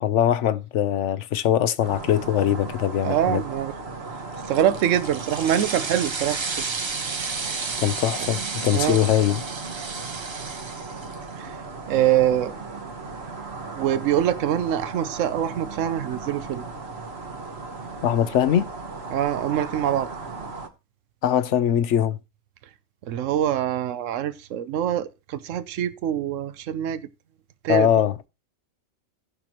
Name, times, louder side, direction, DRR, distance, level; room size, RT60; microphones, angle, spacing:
voice 1, 0.0-3.4 7.8-9.4 18.0-18.7 21.2-22.2 27.7-28.1, left 10 dB, 70° left, 1.0 m, -22 dB
sound 1, 1.8-20.7, right 4 dB, 55° right, 1.4 m, -37 dB
voice 2, 3.0-3.7 4.5-6.4 8.2-8.3 8.7-9.0 11.3-11.6 11.9-12.6 13.8-16.6 19.1-20.1 23.1-27.0 27.6-27.9, right 10 dB, 80° right, 1.1 m, -24 dB
sound 2, 4.3-11.3, right 4 dB, 30° right, 0.5 m, -32 dB
17.5 x 6.0 x 2.9 m
omnidirectional pair, 1.3 m